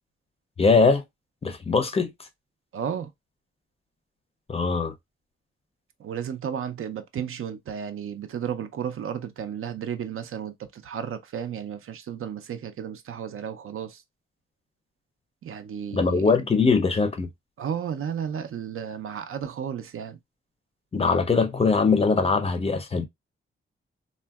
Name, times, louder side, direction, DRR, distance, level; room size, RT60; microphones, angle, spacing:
voice 1, 0.6-1.0 1.4-2.1 4.5-4.9 15.9-17.3 20.9-23.0, left 4 dB, 30° left, 0.4 m, -21 dB
voice 2, 2.7-3.1 6.0-14.0 15.4-16.2 17.6-20.2, right 8 dB, 80° right, 0.5 m, -33 dB
3.6 x 2.2 x 2.2 m
wide cardioid pair, 155°, 21 cm